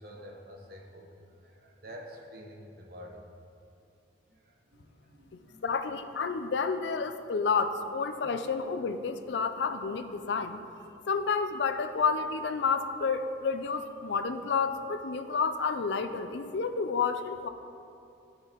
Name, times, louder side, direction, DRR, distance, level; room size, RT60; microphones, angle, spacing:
voice 1, 0.0-3.2 4.3-5.7 7.7-7.8 8.1-8.3, equal, 50° right, 1 dB, 0.9 m, -49 dB
voice 2, 5.6-10.6 11.1-17.5, left 5 dB, 70° left, 9 dB, 0.4 m, -30 dB
11.5 x 6.7 x 3.0 m, 2.6 s
head